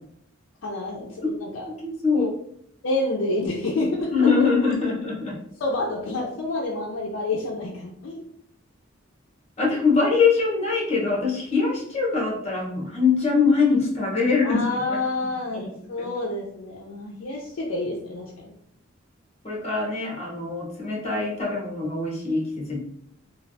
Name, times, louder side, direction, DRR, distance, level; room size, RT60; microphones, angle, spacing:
voice 1, 0.6-1.7 2.8-4.1 5.6-8.2 14.4-18.6, left 2 dB, 80° left, -3 dB, 0.5 m, -28 dB
voice 2, 1.8-2.3 4.1-5.4 9.6-15.0 15.5-16.1 19.4-22.8, left 4 dB, 35° left, -3 dB, 1.0 m, -23 dB
3.2 x 2.3 x 2.6 m, 0.70 s
head